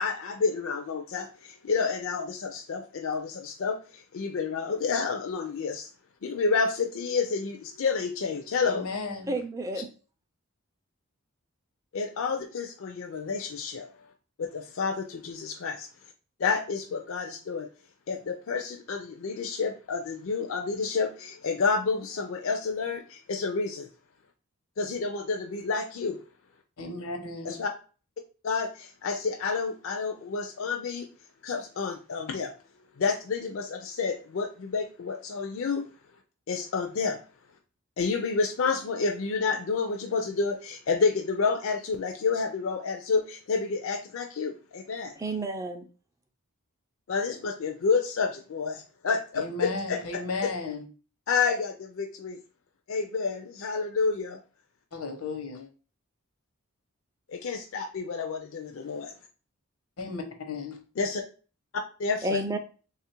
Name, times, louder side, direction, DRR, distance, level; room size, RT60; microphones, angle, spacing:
voice 1, 0.0-5.9 6.2-8.9 11.9-13.9 14.4-15.9 16.4-17.7 18.1-23.9 24.8-26.2 27.4-27.7 28.4-31.1 31.4-32.5 33.0-35.8 36.5-37.2 38.0-45.1 47.1-50.5 51.3-52.4 52.9-54.4 57.3-59.1 61.0-61.2 62.0-62.4, left 4 dB, 60° left, 3 dB, 0.4 m, -29 dB
voice 2, 8.6-9.3 26.8-27.6 49.3-50.9 54.9-55.7 60.0-60.8, left 3 dB, 85° left, 5 dB, 0.8 m, -34 dB
voice 3, 9.3-9.9 45.2-45.8 62.2-62.6, right 2 dB, 15° right, 6 dB, 0.3 m, -30 dB
3.3 x 2.4 x 4.3 m, 0.37 s
head